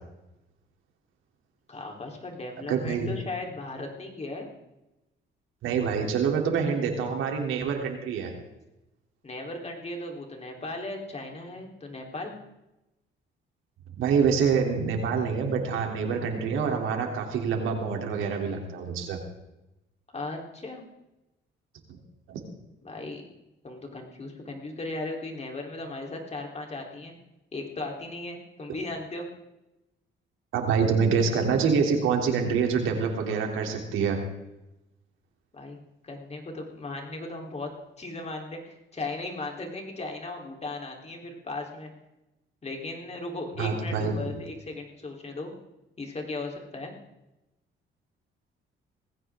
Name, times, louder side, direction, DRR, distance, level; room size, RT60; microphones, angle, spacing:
voice 1, 1.7-4.5 9.2-12.3 20.1-20.9 22.8-23.2 23.6-27.1 27.5-29.3 35.5-35.8 36.0-37.7 38.0-41.9 42.6-45.5 46.0-46.9, left 2 dB, 35° left, 1 dB, 3.7 m, -37 dB
voice 2, 2.7-3.1 5.6-8.3 14.0-19.2 21.9-22.0 22.3-22.4 30.5-34.2 43.6-44.3, right 6 dB, 85° right, 2 dB, 3.2 m, -26 dB
19.5 x 16.0 x 3.7 m, 0.95 s
cardioid pair, 90°, 20 cm